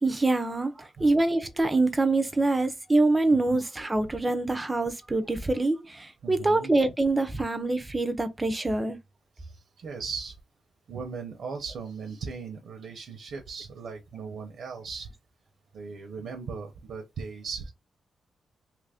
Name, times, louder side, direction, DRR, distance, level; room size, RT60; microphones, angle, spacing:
voice 1, 0.0-9.0, right 2 dB, 15° right, 0.5 m, -25 dB
voice 2, 6.2-6.7 9.4-10.4 10.9-15.1 15.7-17.7, right 5 dB, 70° right, 0.7 m, -38 dB
3.0 x 2.5 x 3.4 m
wide cardioid pair, 150°, 0 cm